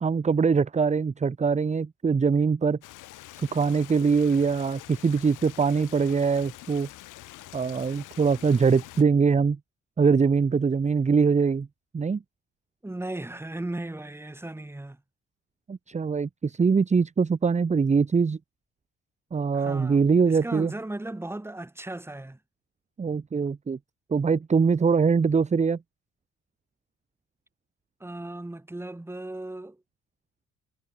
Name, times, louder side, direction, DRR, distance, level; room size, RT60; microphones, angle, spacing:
voice 1, 0.0-2.8 3.4-6.9 7.5-9.6 10.0-11.7 11.9-12.2 15.7-18.4 19.3-20.7 23.0-23.8 24.1-25.8, right 5 dB, 25° right, 0.8 m, -23 dB
Stream, 2.8-9.0, left 16 dB, 90° left, 2.1 m, -46 dB
voice 2, 12.8-15.0 19.5-22.4 28.0-29.8, right 1 dB, 10° right, 1.5 m, -36 dB
cardioid pair, 90°, 30 cm